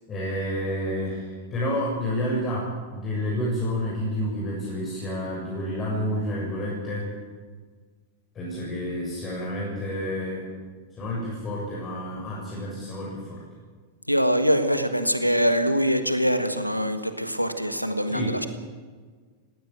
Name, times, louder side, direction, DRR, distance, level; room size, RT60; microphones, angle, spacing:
voice 1, 0.1-7.1 8.3-10.5 10.9-13.4 18.1-18.4, equal, 25° left, -4 dB, 7.0 m, -29 dB
voice 2, 14.1-18.5, equal, 90° right, 8 dB, 1.5 m, -23 dB
19.0 x 16.0 x 9.4 m, 1.5 s
figure-of-eight pair, 90°, 0 cm